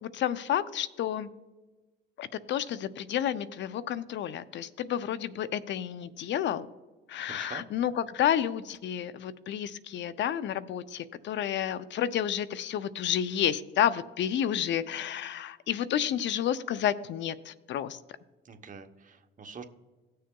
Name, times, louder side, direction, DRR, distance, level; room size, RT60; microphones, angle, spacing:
voice 1, 0.0-1.3 2.2-6.7 7.1-18.0, left 10 dB, 65° left, 15 dB, 0.5 m, -30 dB
voice 2, 7.3-7.6 18.4-19.6, right 5 dB, 40° right, 6 dB, 0.9 m, -45 dB
18.0 x 6.5 x 2.3 m, 1.2 s
cardioid pair, 90°, 20 cm